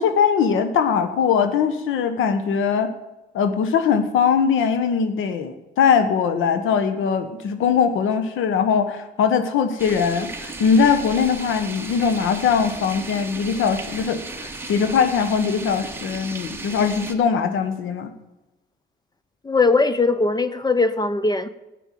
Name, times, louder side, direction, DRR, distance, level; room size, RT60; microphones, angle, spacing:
voice 1, 0.0-2.9 3.3-18.1, left 6 dB, 85° left, 9 dB, 1.4 m, -21 dB
sound 1, 9.8-17.1, right 3 dB, 10° right, 1.8 m, -35 dB
voice 2, 19.4-21.5, left 3 dB, 20° left, 14 dB, 0.8 m, -20 dB
12.5 x 9.2 x 7.6 m, 1.0 s
cardioid pair, 90°, 20 cm